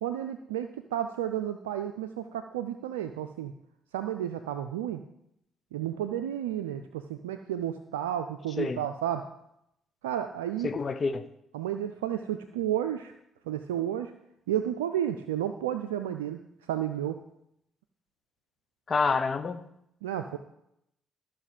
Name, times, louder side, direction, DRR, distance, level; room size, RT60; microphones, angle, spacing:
voice 1, 0.0-3.5 3.9-5.0 5.7-9.3 10.0-10.7 11.5-13.1 13.5-14.1 14.5-16.4 16.7-17.2 20.0-20.4, right 10 dB, 90° right, 8 dB, 0.4 m, -32 dB
voice 2, 10.6-11.2 18.9-19.6, left 4 dB, 45° left, 10 dB, 0.9 m, -27 dB
13.5 x 5.9 x 4.9 m, 0.80 s
hypercardioid pair, 50°, 0 cm